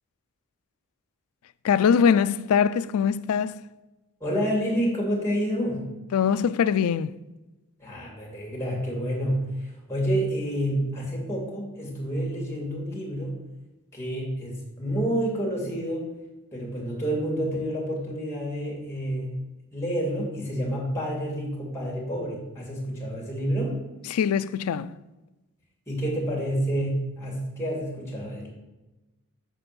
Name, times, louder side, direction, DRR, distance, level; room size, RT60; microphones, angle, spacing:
voice 1, 1.6-3.6 6.1-7.1 24.1-24.9, left 7 dB, 70° left, 0.3 m, -22 dB
voice 2, 4.2-5.8 7.8-13.4 13.9-16.1 16.5-19.4 19.7-23.8 25.9-28.5, equal, 10° left, 2.2 m, -29 dB
6.9 x 4.4 x 5.8 m
head